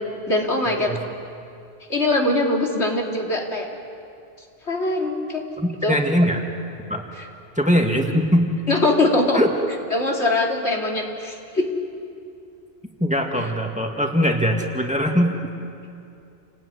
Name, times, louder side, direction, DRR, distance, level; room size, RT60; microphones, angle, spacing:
voice 1, 0.3-1.0 1.9-3.7 4.7-5.4 5.8-6.0 8.7-9.4 9.9-11.7, left 2 dB, 85° left, 0 dB, 3.3 m, -22 dB
voice 2, 5.6-6.4 6.9-7.0 7.6-8.5 9.3-9.5 13.0-15.4, equal, 5° right, 2 dB, 2.1 m, -21 dB
29.5 x 19.5 x 9.7 m, 2.6 s
omnidirectional pair, 1.1 m